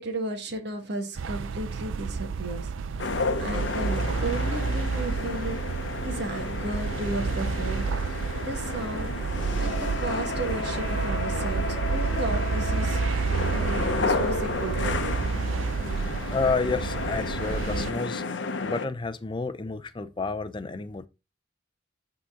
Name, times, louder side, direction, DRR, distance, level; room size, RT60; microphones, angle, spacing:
voice 1, 0.0-5.7 6.0-7.9 8.4-13.0 13.5-15.2, right 2 dB, 60° right, 1.5 m, -34 dB
sound 1, 1.2-17.9, right 5 dB, 85° right, 0.5 m, -30 dB
sound 2, 3.0-18.9, left 3 dB, 65° left, 0.7 m, -32 dB
voice 2, 16.3-18.2 18.6-21.1, left 4 dB, 25° left, 0.5 m, -30 dB
8.7 x 3.8 x 3.7 m
head